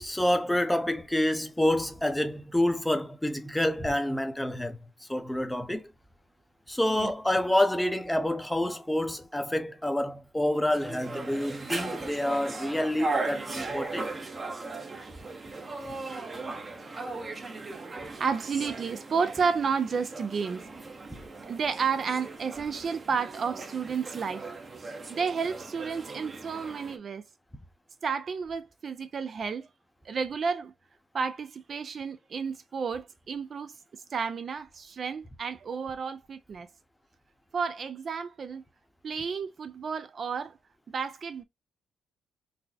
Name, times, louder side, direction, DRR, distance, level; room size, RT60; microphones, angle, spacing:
voice 1, 0.0-5.9 6.7-14.1 15.9-16.0, left 1 dB, 5° left, 0.6 m, -28 dB
Mallet percussion, 7.6-10.0, right 3 dB, 50° left, 1.2 m, -52 dB
sound 1, 10.7-27.0, right 3 dB, 30° right, 0.7 m, -38 dB
voice 2, 18.0-20.7 21.5-24.5 25.1-27.2 28.0-29.7 30.0-30.7 31.1-36.7 37.5-38.6 39.0-40.6 40.9-41.4, right 5 dB, 45° right, 0.4 m, -31 dB
4.0 x 2.0 x 2.7 m
cardioid pair, 90°, 0 cm